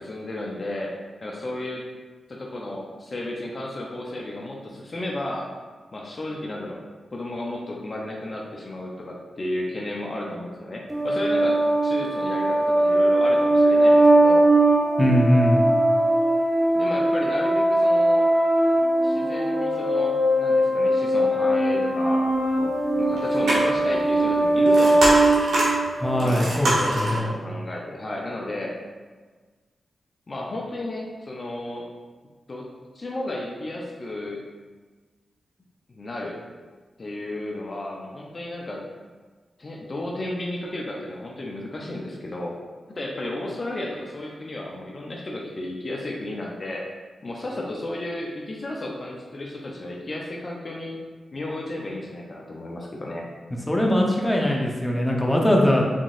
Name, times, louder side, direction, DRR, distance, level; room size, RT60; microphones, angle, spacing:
voice 1, 0.0-1.8 2.3-5.5 5.9-6.8 7.1-14.5 16.7-18.3 19.0-25.3 26.1-28.8 30.3-31.9 32.5-32.7 32.9-34.4 36.0-36.4 37.0-38.8 39.6-42.6 42.9-46.8 47.2-51.0 51.3-53.3, left 1 dB, 50° left, -2 dB, 0.6 m, -33 dB
sound 1, 10.9-26.3, right 1 dB, 25° right, 0.8 m, -20 dB
voice 2, 15.0-15.6 26.0-27.3 53.7-55.8, equal, 15° left, -1 dB, 0.7 m, -21 dB
sound 2, 23.1-27.2, right 1 dB, 80° right, 1.0 m, -25 dB
3.8 x 3.6 x 2.5 m, 1.4 s
supercardioid pair, 45°, 0 cm